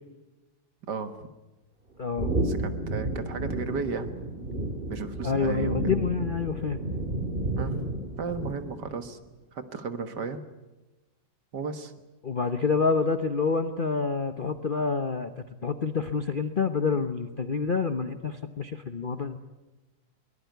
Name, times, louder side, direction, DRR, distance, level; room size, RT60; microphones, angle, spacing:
voice 1, 0.9-1.3 2.4-4.1 4.9-5.8 7.6-7.8 8.2-9.2 9.5-10.4 11.5-11.9 19.3-19.4, right 5 dB, 60° right, 9 dB, 2.0 m, -34 dB
voice 2, 2.0-2.3 5.2-6.8 12.2-19.4, left 5 dB, 40° left, 8 dB, 0.7 m, -28 dB
sound 1, 2.2-8.9, right 2 dB, 25° right, 2.3 m, -31 dB
22.5 x 20.0 x 9.3 m, 1.1 s
omnidirectional pair, 2.1 m